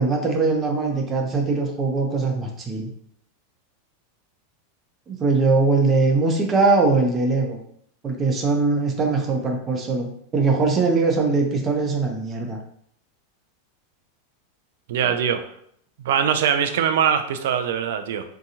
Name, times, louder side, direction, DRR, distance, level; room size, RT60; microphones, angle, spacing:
voice 1, 0.0-2.9 5.1-7.6 8.0-10.1 10.3-12.6, right 3 dB, 30° right, 2 dB, 0.6 m, -21 dB
voice 2, 14.9-15.4 16.0-18.2, right 8 dB, 70° right, 8 dB, 0.3 m, -22 dB
2.8 x 2.2 x 2.7 m, 0.69 s
hypercardioid pair, 105°, 0 cm